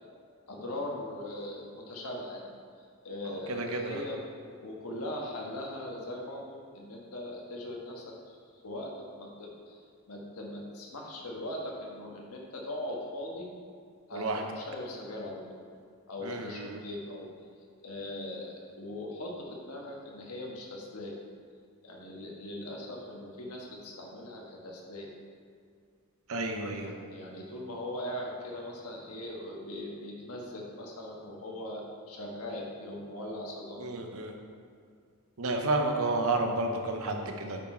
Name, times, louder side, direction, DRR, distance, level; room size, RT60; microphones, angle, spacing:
voice 1, 0.5-2.5 2.8-4.2 4.4-8.4 8.6-13.5 14.1-15.6 16.1-17.3 17.8-21.2 21.8-25.1 26.7-33.8, left 1 dB, 90° left, -1 dB, 1.4 m, -40 dB
voice 2, 3.5-4.0 14.1-14.4 16.2-16.8 26.3-26.9 33.8-34.3 35.4-37.6, right 2 dB, 70° right, 4 dB, 0.8 m, -31 dB
8.8 x 4.7 x 4.4 m, 2.3 s
head